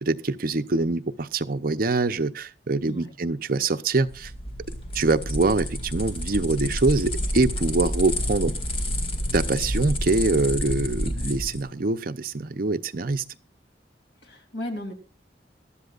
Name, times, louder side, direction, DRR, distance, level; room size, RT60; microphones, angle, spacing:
voice 1, 0.0-4.3 4.9-8.5 9.3-13.2, right 3 dB, 55° right, 10 dB, 0.7 m, -24 dB
sound 1, 4.0-11.6, equal, 30° left, 2.0 m, -29 dB
voice 2, 14.2-14.9, left 1 dB, 85° left, 5 dB, 3.2 m, -35 dB
21.0 x 13.0 x 2.5 m, 0.31 s
head